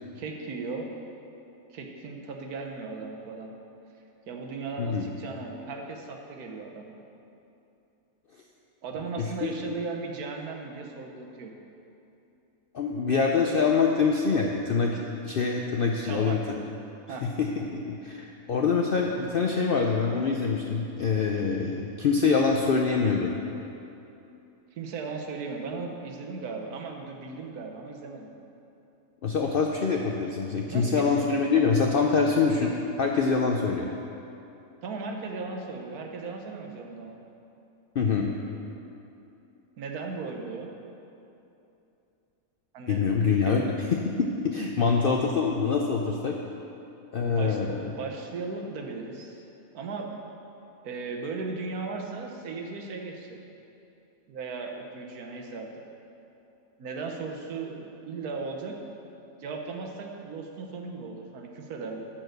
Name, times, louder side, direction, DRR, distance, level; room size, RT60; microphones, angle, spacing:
voice 1, 0.2-0.9 1.7-3.5 4.3-7.0 8.8-11.6 16.0-16.5 17.1-17.3 24.7-28.3 30.7-31.3 34.8-37.2 39.8-40.7 42.7-43.5 47.3-49.4 49.7-50.1 50.8-53.4 54.3-55.7 56.8-58.7 59.4-62.0, right 4 dB, 80° right, 2 dB, 1.4 m, -37 dB
voice 2, 4.8-5.1 9.2-9.5 12.7-16.4 17.2-23.3 29.2-33.9 38.0-38.3 42.9-43.7 44.2-46.4 47.1-47.9, left 5 dB, 70° left, 1 dB, 0.5 m, -25 dB
10.5 x 4.6 x 6.5 m, 2.8 s
omnidirectional pair, 1.6 m